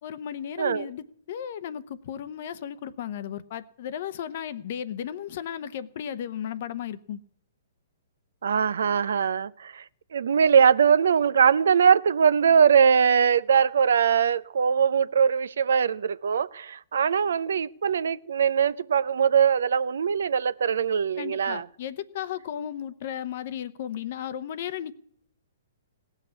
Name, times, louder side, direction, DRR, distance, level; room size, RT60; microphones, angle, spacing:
voice 1, 0.0-7.2 21.2-24.9, left 9 dB, 55° left, 0.9 m, -35 dB
voice 2, 8.4-9.8 10.1-21.6, right 7 dB, 70° right, 0.5 m, -21 dB
17.5 x 6.5 x 9.6 m
figure-of-eight pair, 120°, 0 cm